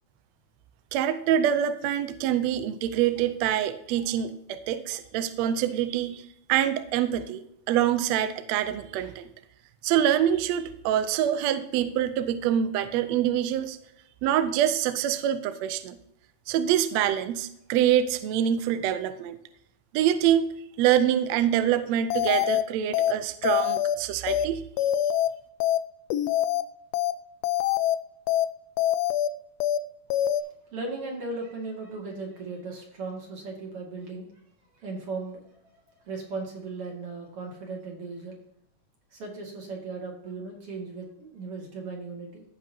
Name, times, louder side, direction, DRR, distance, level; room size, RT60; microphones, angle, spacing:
voice 1, 0.9-9.3 9.8-13.8 14.2-16.0 16.5-19.4 19.9-24.6, right 10 dB, 75° right, 11 dB, 1.6 m, -25 dB
sound 1, 22.1-22.6 22.9-23.1 23.4-24.0 24.3-24.5 24.8-25.3 25.6-25.8 26.1-26.6 26.9-27.1 27.4-28.0 28.3-28.5 28.8-29.3 29.6-29.8 30.1-30.4, left 12 dB, 90° left, 1.4 m, -24 dB
voice 2, 30.7-34.3 34.7-35.6 36.0-38.4 39.1-42.4, right 3 dB, 50° right, 0 dB, 2.9 m, -37 dB
16.0 x 5.4 x 2.8 m, 0.77 s
omnidirectional pair, 3.5 m